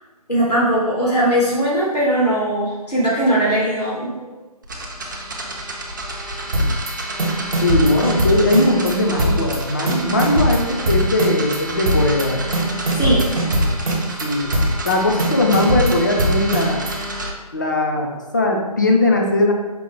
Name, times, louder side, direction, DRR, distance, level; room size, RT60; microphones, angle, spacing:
voice 1, 0.3-4.1 9.9-10.2 12.9-13.2, right 1 dB, 90° left, -6 dB, 1.3 m, -19 dB
sound 1, 4.6-17.3, right 1 dB, 30° right, 0.4 m, -30 dB
sound 2, 6.5-6.9 7.2-8.9 9.2-9.6 9.9-11.6 11.9-12.2 12.5-14.2 14.5-14.9 15.2-16.9, equal, 55° right, 0.9 m, -20 dB
voice 2, 7.6-12.4 14.2-14.5 14.8-16.9 17.5-19.5, left 2 dB, 30° left, 1 dB, 0.4 m, -19 dB
5.1 x 2.1 x 3.1 m, 1.2 s
figure-of-eight pair, 150°, 20 cm